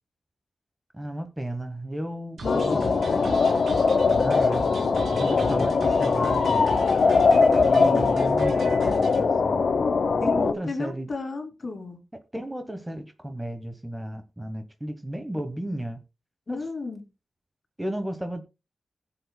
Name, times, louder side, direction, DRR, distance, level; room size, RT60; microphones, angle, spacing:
voice 1, 0.9-2.8 4.2-4.7 5.1-6.8 7.5-9.6 10.2-11.1 12.3-16.0 16.5-16.7 17.8-18.4, right 1 dB, 10° right, 1.1 m, -34 dB
sound 1, 2.4-10.5, left 4 dB, 65° left, 0.8 m, -21 dB
voice 2, 2.4-3.6 7.6-8.2 10.3-12.0 16.5-17.0, left 3 dB, 45° left, 2.5 m, -34 dB
sound 2, 2.4-9.2, right 3 dB, 80° right, 3.2 m, -39 dB
20.5 x 7.0 x 2.2 m
wide cardioid pair, 140°, 0 cm